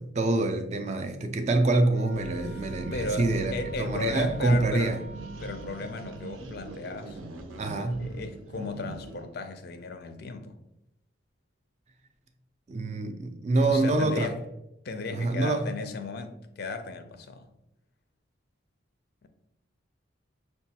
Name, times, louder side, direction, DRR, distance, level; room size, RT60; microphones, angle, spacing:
voice 1, 0.0-3.5 3.8-5.0 7.6-8.1 12.7-14.3 15.1-15.7, right 2 dB, 35° right, 0.3 m, -26 dB
Wind instrument woodwind instrument, 1.9-6.3, right 3 dB, 5° right, 0.7 m, -48 dB
sound 1, 2.1-9.3, right 2 dB, 80° right, 0.6 m, -41 dB
voice 2, 2.5-5.0 5.4-7.2 8.0-10.6 13.7-14.4 14.8-17.5 19.2-19.3, left 3 dB, 50° left, 0.4 m, -35 dB
5.9 x 2.2 x 2.8 m
head